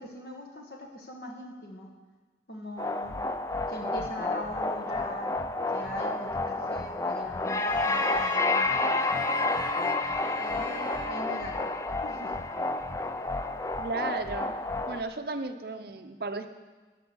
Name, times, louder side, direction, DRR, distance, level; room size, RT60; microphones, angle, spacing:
voice 1, 0.0-1.9 2.5-3.1 3.7-5.3 5.7-9.2 10.3-11.7 12.0-12.3, equal, 60° left, 0 dB, 1.7 m, -41 dB
sound 1, 2.8-15.0, left 2 dB, 15° left, 0.4 m, -30 dB
sound 2, 7.5-12.1, right 5 dB, 85° right, 1.0 m, -45 dB
voice 2, 13.8-14.5 14.9-16.6, right 3 dB, 55° right, 7 dB, 0.6 m, -34 dB
18.0 x 6.7 x 6.2 m, 1.3 s
head